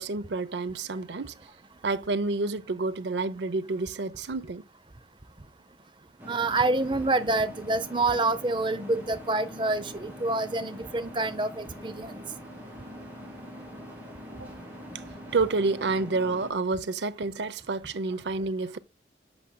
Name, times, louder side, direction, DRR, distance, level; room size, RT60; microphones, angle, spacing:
voice 1, 0.0-1.3 1.8-4.6 14.4-14.5 15.3-18.8, right 3 dB, 85° right, 0.7 m, -29 dB
sound 1, 6.2-16.5, equal, 10° right, 2.6 m, -44 dB
voice 2, 6.3-12.2, right 2 dB, 25° right, 0.6 m, -27 dB
8.5 x 8.0 x 2.2 m
head